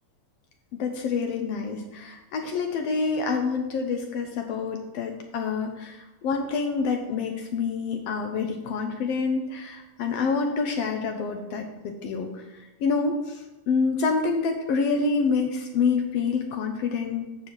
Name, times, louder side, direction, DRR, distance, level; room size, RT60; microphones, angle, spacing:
voice 1, 0.7-12.3 12.8-13.4 13.7-17.2, left 4 dB, 70° left, 3 dB, 1.7 m, -27 dB
9.6 x 4.2 x 7.4 m, 1.0 s
omnidirectional pair, 3.5 m